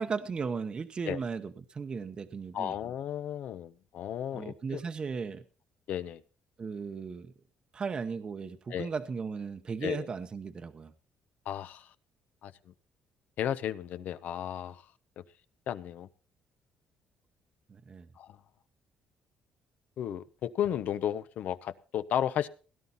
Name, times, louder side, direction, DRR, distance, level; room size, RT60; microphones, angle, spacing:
voice 1, 0.0-2.8 4.3-5.4 6.6-7.3 7.7-10.9 17.7-18.1, right 5 dB, 30° right, 9 dB, 0.9 m, -36 dB
voice 2, 2.5-4.8 5.9-6.2 8.7-8.9 9.8-10.1 11.5-11.8 12.4-12.5 13.4-14.8 15.7-16.1 18.2-18.3 20.0-22.5, left 10 dB, 65° left, 14 dB, 0.8 m, -33 dB
17.0 x 11.5 x 4.1 m, 0.37 s
cardioid pair, 125°, 3 cm